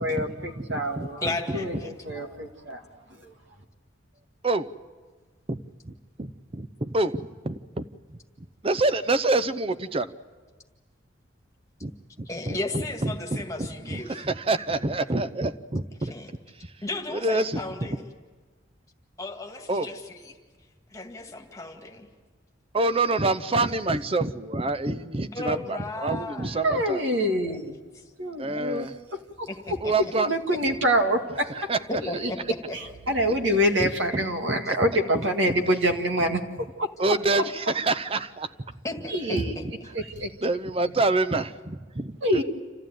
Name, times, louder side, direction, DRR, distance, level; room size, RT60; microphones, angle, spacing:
voice 1, 0.0-1.2 1.5-2.8 3.2-3.3 26.6-27.7 28.2-29.5 30.1-31.5 32.2-32.3 32.7-37.1 39.1-39.5 39.9-40.3 42.2-42.4, equal, 80° right, 4 dB, 2.0 m, -26 dB
voice 2, 0.5-1.1 1.5-1.6 2.3-2.4 4.4-4.7 5.5-8.2 8.6-10.1 11.8-11.9 12.2-12.6 13.0-13.2 13.6-16.1 16.6-16.7 17.1-18.0 19.7-19.9 22.7-27.0 28.4-29.0 29.8-30.3 31.5-31.8 33.8-34.9 35.1-35.6 37.0-38.5 39.6-39.7 40.4-42.4, right 2 dB, 30° right, 13 dB, 0.7 m, -27 dB
voice 3, 1.2-1.9 12.3-14.2 16.0-16.3 16.8-18.1 19.2-20.3 20.9-22.1 25.3-27.1 27.4-27.6 28.0-28.1 29.5-29.9 31.9-32.8 38.8-39.6, left 2 dB, 15° left, 2 dB, 2.0 m, -35 dB
27.5 x 14.5 x 9.1 m, 1.4 s
head